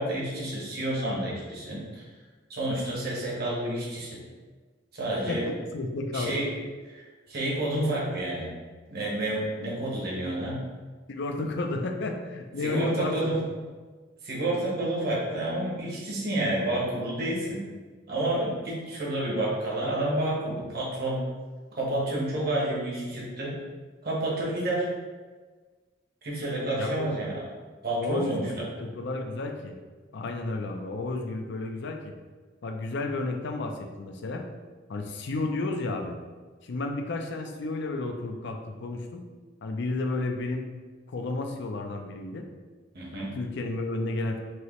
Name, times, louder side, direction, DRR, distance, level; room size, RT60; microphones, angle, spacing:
voice 1, 0.0-2.0 2.5-4.2 4.9-5.5 6.1-6.5 6.9-8.5 8.9-10.6 12.6-13.4 14.2-17.6 18.1-21.2 21.7-23.5 24.0-24.9 26.2-27.4 27.8-28.6 42.9-43.3, right 1 dB, 55° right, -5 dB, 1.2 m, -29 dB
voice 2, 5.3-6.4 11.1-13.4 26.8-27.1 28.0-29.8 30.1-32.1 32.6-34.4 34.9-36.2 36.6-39.2 39.6-40.7 41.1-42.4 43.2-44.4, left 2 dB, 65° left, 4 dB, 0.5 m, -32 dB
4.7 x 2.9 x 3.1 m, 1.4 s
head